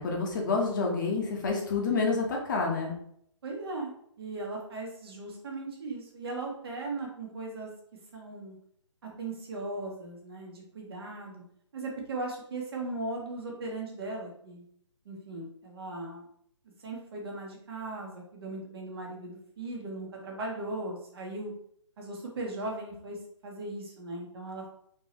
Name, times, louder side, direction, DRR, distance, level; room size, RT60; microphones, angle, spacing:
voice 1, 0.0-2.9, left 4 dB, 40° left, 0 dB, 0.8 m, -28 dB
voice 2, 3.4-3.9 4.2-7.7 8.1-8.6 9.0-11.4 11.7-14.6 15.0-16.2 16.8-21.5 22.0-23.2 23.4-24.7, right 2 dB, 50° right, 0 dB, 1.1 m, -38 dB
3.7 x 2.9 x 2.9 m, 0.67 s
hypercardioid pair, 150°, 16 cm